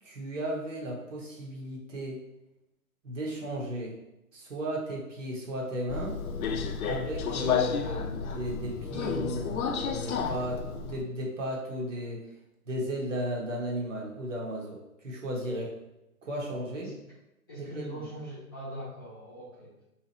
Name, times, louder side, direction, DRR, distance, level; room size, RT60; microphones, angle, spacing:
voice 1, 0.0-2.2 3.0-4.0 4.3-6.2 6.8-12.3 12.7-15.8 16.2-16.9 17.6-18.0, right 1 dB, 55° right, -1 dB, 1.0 m, -35 dB
Subway metro underground, 5.9-11.0, left 6 dB, 70° left, 0.5 m, -31 dB
voice 2, 16.4-17.0 17.5-19.8, right 1 dB, 15° left, -9 dB, 0.8 m, -42 dB
2.9 x 2.4 x 3.9 m, 0.93 s
hypercardioid pair, 170°, 45 cm